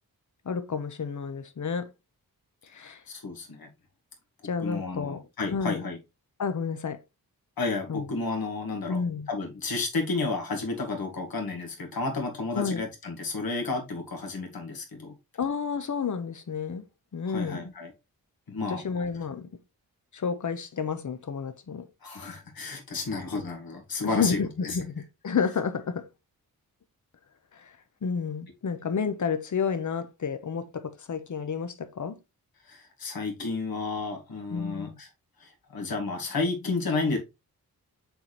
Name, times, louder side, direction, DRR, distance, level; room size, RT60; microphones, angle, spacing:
voice 1, 0.4-1.9 2.7-3.0 4.4-5.2 5.5-5.8 6.4-7.0 7.9-8.0 8.9-9.3 12.5-12.8 15.4-16.8 17.1-17.7 18.7-19.5 20.1-21.8 24.0-26.0 27.5-27.6 28.0-32.2 34.5-35.0, left 6 dB, 50° left, 1.0 m, -30 dB
voice 2, 2.8-3.7 4.6-6.0 7.6-9.0 9.3-15.1 17.3-17.9 18.5-18.8 22.0-24.8 32.7-35.1 35.4-37.2, left 3 dB, 70° left, 2.2 m, -32 dB
6.8 x 4.4 x 3.2 m
wide cardioid pair, 110°, 37 cm